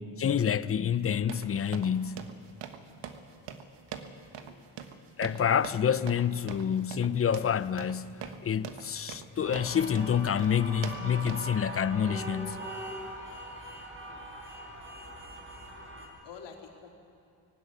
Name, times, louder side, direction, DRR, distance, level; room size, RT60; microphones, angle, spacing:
voice 1, 0.2-2.3 5.2-12.7, left 8 dB, 35° left, 0.6 m, -28 dB
sound 1, 1.3-11.4, right 7 dB, 75° right, 1.5 m, -44 dB
voice 2, 4.0-4.7 14.0-14.4 15.8-16.9, left 6 dB, 75° left, 3.6 m, -51 dB
sound 2, 9.4-16.1, right 1 dB, 30° right, 5.0 m, -41 dB
19.0 x 16.5 x 9.8 m
cardioid pair, 125°, 43 cm